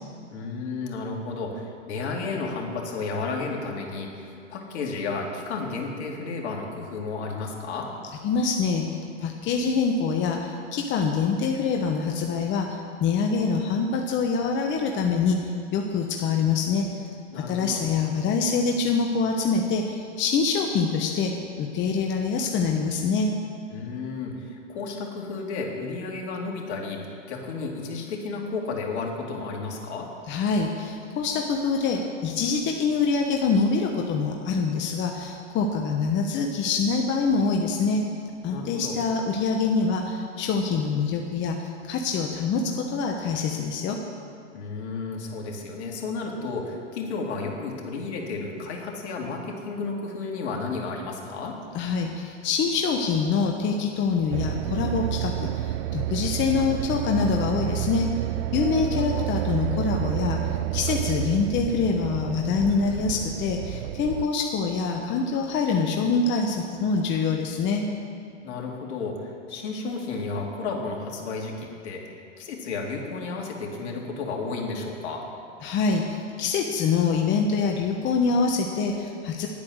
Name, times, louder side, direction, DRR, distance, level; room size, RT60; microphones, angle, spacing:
voice 1, 0.3-7.9 17.3-17.9 23.7-30.1 38.5-39.0 44.5-51.6 58.7-59.2 68.4-75.2, left 4 dB, 65° left, 0 dB, 2.4 m, -32 dB
voice 2, 8.2-8.8 9.2-15.4 15.7-16.8 17.5-21.3 21.6-23.3 30.3-38.0 38.4-44.0 51.7-58.1 58.5-67.8 75.6-79.5, left 5 dB, 30° left, 2 dB, 1.0 m, -25 dB
sound 1, 54.3-64.3, right 14 dB, 65° right, 0.5 m, -29 dB
10.5 x 8.6 x 6.4 m, 2.5 s
hypercardioid pair, 115°, 36 cm